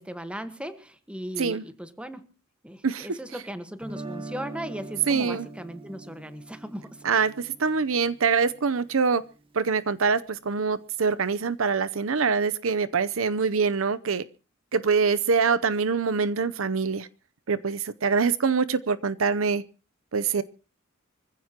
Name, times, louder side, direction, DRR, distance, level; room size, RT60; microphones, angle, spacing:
voice 1, 0.0-2.3 2.6-7.2, equal, 5° right, 1.4 m, -38 dB
Guitar, 3.8-9.8, right 2 dB, 25° right, 1.7 m, -43 dB
voice 2, 5.1-5.5 7.0-9.2 9.5-14.2 14.7-17.1 17.5-19.6 20.1-20.4, right 5 dB, 70° right, 0.7 m, -24 dB
25.0 x 15.5 x 2.9 m
head